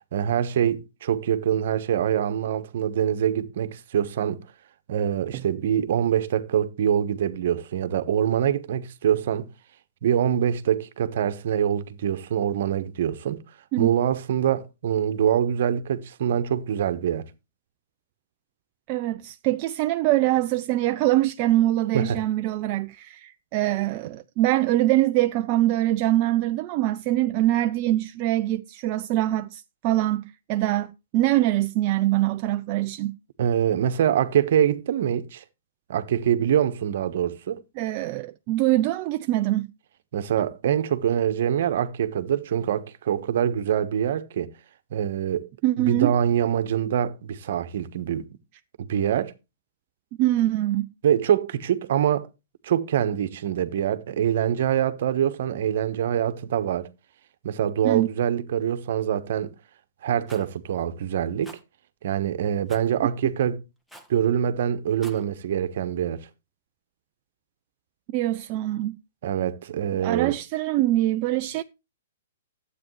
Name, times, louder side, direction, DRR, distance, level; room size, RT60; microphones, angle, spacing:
voice 1, 0.1-4.4 4.9-9.5 10.0-13.4 13.8-17.2 21.9-22.2 33.4-35.4 35.9-37.6 40.1-44.5 44.9-45.5 45.8-48.3 48.8-49.3 51.0-52.3 52.6-56.9 57.4-59.5 60.0-61.6 62.0-63.6 64.1-66.2 69.2-70.3, right 9 dB, 60° right, 1.2 m, -24 dB
voice 2, 18.9-30.2 30.5-33.2 37.8-39.7 45.6-46.1 50.2-50.9 57.8-58.1 68.1-68.9 70.0-71.6, right 15 dB, 40° right, 0.5 m, -23 dB
Rattle, 60.3-60.5 61.4-61.6 62.7-62.9 63.9-64.2 64.9-65.2, right 1 dB, ahead, 1.4 m, -46 dB
12.0 x 8.6 x 3.2 m
hypercardioid pair, 135°, 0 cm